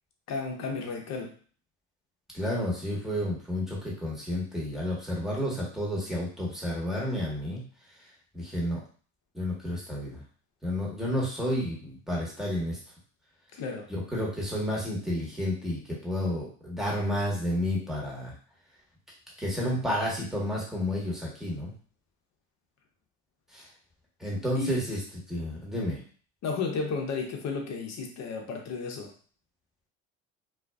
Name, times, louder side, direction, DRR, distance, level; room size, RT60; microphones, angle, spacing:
voice 1, 0.3-1.3 13.5-13.9 24.6-24.8 26.4-29.1, left 4 dB, 45° left, 2 dB, 0.7 m, -33 dB
voice 2, 2.3-7.6 8.3-8.8 9.3-10.2 10.6-12.8 13.9-18.4 19.4-21.7 23.5-23.7 24.2-25.0 25.3-26.0, left 1 dB, ahead, -5 dB, 1.2 m, -31 dB
2.4 x 2.3 x 2.3 m, 0.43 s
hypercardioid pair, 65°, 38 cm